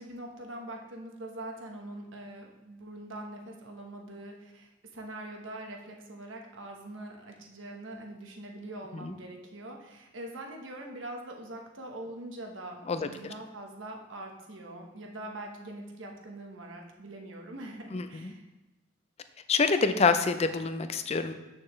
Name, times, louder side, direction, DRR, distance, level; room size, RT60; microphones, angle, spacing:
voice 1, 0.0-18.5, right 1 dB, 80° right, 1 dB, 1.2 m, -43 dB
voice 2, 17.9-18.3 19.5-21.3, left 4 dB, 35° left, 9 dB, 0.5 m, -26 dB
8.6 x 6.4 x 3.2 m, 1.1 s
head